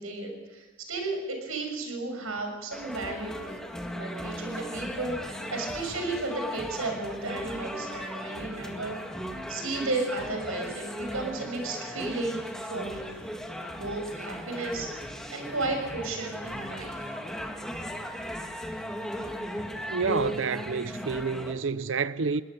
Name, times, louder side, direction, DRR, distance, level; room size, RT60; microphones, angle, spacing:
voice 1, 0.0-3.6 3.9-9.0 9.5-13.1 13.8-17.0, right 2 dB, 90° right, 6.1 m, -34 dB
sound 1, 2.7-21.5, equal, 5° left, 1.8 m, -37 dB
voice 2, 19.9-22.4, right 5 dB, 65° right, 0.6 m, -29 dB
21.5 x 18.5 x 6.8 m
head